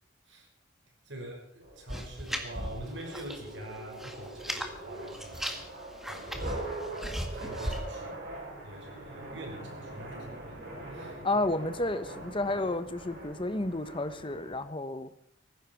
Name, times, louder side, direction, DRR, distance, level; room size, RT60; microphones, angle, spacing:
voice 1, 1.1-5.6 6.0-8.1 8.6-10.6 10.9-11.1, right 1 dB, 75° right, 2 dB, 5.7 m, -45 dB
sound 1, 1.6-14.6, right 2 dB, 55° right, 7.8 m, -43 dB
sound 2, 1.9-3.5 3.8-4.7 5.1-7.8, equal, ahead, 1.8 m, -37 dB
voice 2, 11.2-15.1, left 2 dB, 25° left, 11 dB, 1.1 m, -31 dB
18.5 x 15.0 x 4.7 m, 0.66 s
head